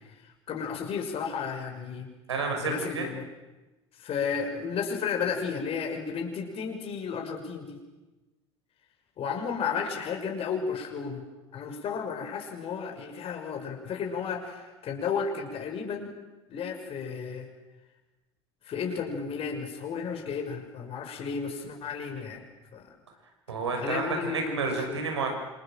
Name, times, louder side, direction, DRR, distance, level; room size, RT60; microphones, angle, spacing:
voice 1, 0.5-2.1 2.6-3.2 4.0-7.8 9.2-11.2 11.5-16.1 16.5-17.5 18.6-22.4 22.7-22.9 23.8-25.0, left 6 dB, 40° left, 2 dB, 6.2 m, -33 dB
voice 2, 2.3-3.1 23.5-25.3, right 4 dB, 80° right, 4 dB, 6.3 m, -30 dB
27.5 x 27.0 x 7.6 m, 1.1 s
figure-of-eight pair, 70°, 14 cm